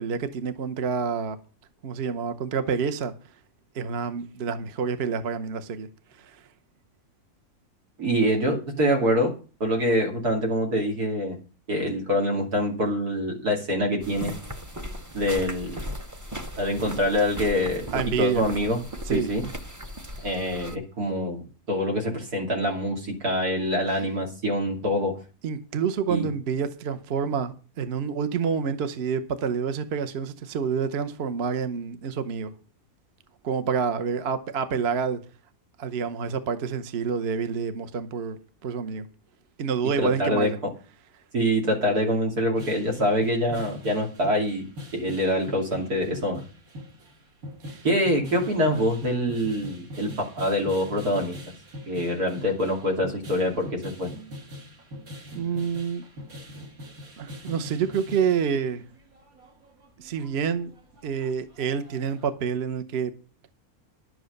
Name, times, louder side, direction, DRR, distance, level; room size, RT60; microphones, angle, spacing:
voice 1, 0.0-1.4 1.8-3.1 3.7-5.9 6.2-6.4 17.9-18.4 19.1-19.3 23.9-24.0 25.4-32.5 33.4-35.2 35.8-39.1 39.6-40.6 47.7-47.8 55.3-56.0 57.2-58.8 60.0-60.7 61.0-63.1, right 6 dB, 50° right, 1.0 m, -28 dB
voice 2, 8.0-9.3 9.6-11.4 11.7-14.3 15.1-15.8 16.6-18.8 19.1-19.4 20.2-25.2 26.1-26.3 40.0-40.5 41.3-44.6 44.9-46.4 47.8-51.4 51.9-54.1, equal, 85° right, 3.3 m, -25 dB
sound 1, 14.0-20.8, equal, 15° right, 0.6 m, -37 dB
sound 2, 42.5-62.3, left 1 dB, 70° right, 2.6 m, -42 dB
11.0 x 7.8 x 6.5 m
omnidirectional pair, 1.6 m